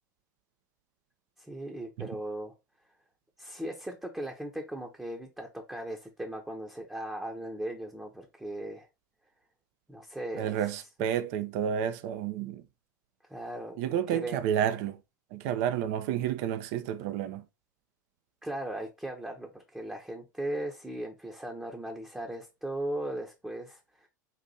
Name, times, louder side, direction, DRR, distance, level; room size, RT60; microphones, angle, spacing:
voice 1, 1.4-2.5 3.4-8.9 9.9-10.7 13.3-14.4 18.4-24.1, right 1 dB, 5° right, 0.8 m, -38 dB
voice 2, 10.3-12.6 13.8-15.0 15.3-17.4, right 9 dB, 55° right, 0.5 m, -30 dB
4.1 x 2.5 x 4.0 m
figure-of-eight pair, 85°, 10 cm